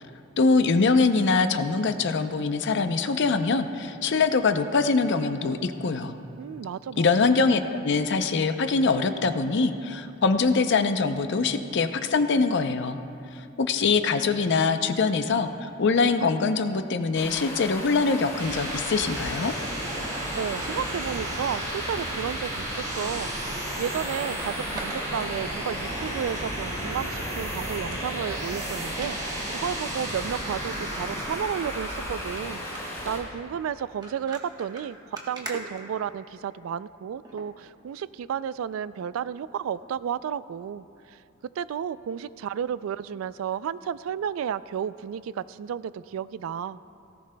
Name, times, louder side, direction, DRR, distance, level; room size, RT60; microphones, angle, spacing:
voice 1, 0.4-6.2 7.0-13.0 13.6-19.5, left 4 dB, 60° left, 9 dB, 0.6 m, -23 dB
voice 2, 6.4-7.3 20.3-46.8, right 8 dB, 85° right, 17 dB, 0.3 m, -32 dB
Stream, 17.1-33.2, equal, 15° left, 2.9 m, -36 dB
sound 1, 18.1-32.6, right 1 dB, 35° right, 2.1 m, -34 dB
sound 2, 24.4-25.8 26.3-26.9 27.3-27.4 27.8-28.2 28.9-29.1 29.9-30.0 30.3-30.4 30.7-31.9 32.2-32.4 32.7-33.0 33.8-36.5 37.2-37.5 38.0-38.1, right 2 dB, 20° right, 1.1 m, -42 dB
17.5 x 15.0 x 2.2 m, 2.7 s
head